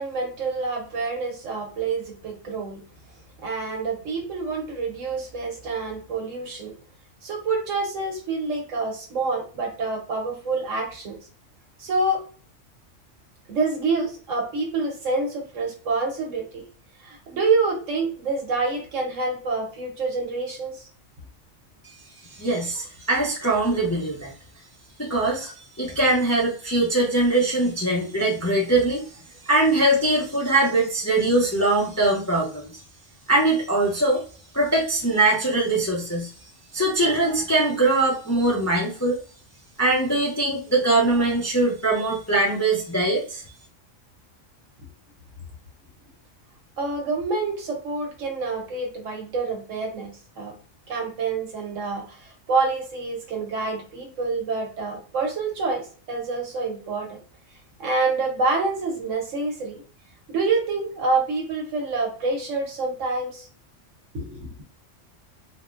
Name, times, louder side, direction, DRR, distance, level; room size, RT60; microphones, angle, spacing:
voice 1, 0.0-2.8 3.4-6.7 7.2-11.1 11.8-12.2 13.5-16.6 17.0-20.8 22.2-22.5 25.4-25.5 46.8-50.5 50.9-57.2 57.8-59.8 60.3-63.5 64.1-64.5, right 3 dB, 80° right, 1 dB, 1.3 m, -27 dB
voice 2, 22.4-24.3 25.0-25.5 25.8-29.2 29.4-32.8 33.3-34.2 34.5-36.3 36.7-39.2 39.8-43.4, right 2 dB, 20° left, -4 dB, 0.4 m, -22 dB
3.6 x 2.0 x 2.4 m, 0.40 s
omnidirectional pair, 1.3 m